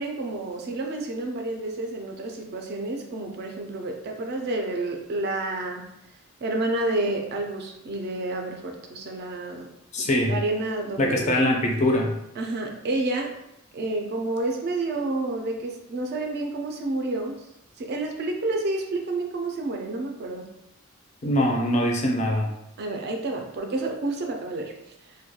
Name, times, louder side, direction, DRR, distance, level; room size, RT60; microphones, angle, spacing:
voice 1, 0.0-5.8 6.4-9.7 10.0-11.4 12.3-13.3 13.7-17.4 17.8-20.5 22.8-24.7, right 2 dB, 50° right, 3 dB, 0.3 m, -29 dB
voice 2, 9.9-10.4 11.0-12.1 21.2-22.5, left 1 dB, 30° left, 0 dB, 0.3 m, -22 dB
2.2 x 2.1 x 2.7 m, 0.84 s
head